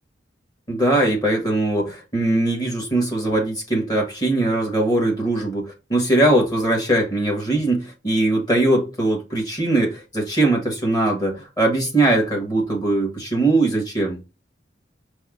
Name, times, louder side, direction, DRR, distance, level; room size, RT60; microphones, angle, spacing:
voice 1, 0.7-14.2, right 2 dB, 20° left, 1.4 m, -21 dB
5.2 x 2.1 x 3.6 m
head